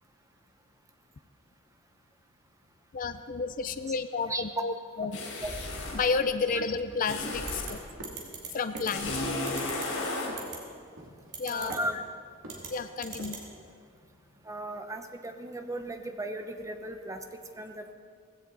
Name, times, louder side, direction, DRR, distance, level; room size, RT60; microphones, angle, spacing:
voice 1, 2.9-4.7 5.0-5.2 5.9-7.8 8.5-9.2 11.4-11.7 12.7-13.4, left 4 dB, 40° left, 11 dB, 0.4 m, -31 dB
sound 1, 5.1-6.1 7.1-7.8 8.9-10.3, left 2 dB, 75° left, 4.3 m, -33 dB
sound 2, 7.2-7.4 8.0-8.3 8.7-8.9 9.5-9.8 10.3-10.6 11.0-11.3 11.7-11.9 12.4-12.9 13.2-13.4, right 1 dB, 75° right, 2.5 m, -43 dB
sound 3, 7.5-7.7 8.0-8.5 8.8-8.9 9.5-9.9 10.4-10.6 11.3-11.8 12.5-12.7 13.0-13.4, right 7 dB, 50° right, 3.1 m, -39 dB
voice 2, 11.5-12.0 14.4-17.9, right 1 dB, 15° right, 6 dB, 0.8 m, -37 dB
18.0 x 16.0 x 4.0 m, 2.2 s
head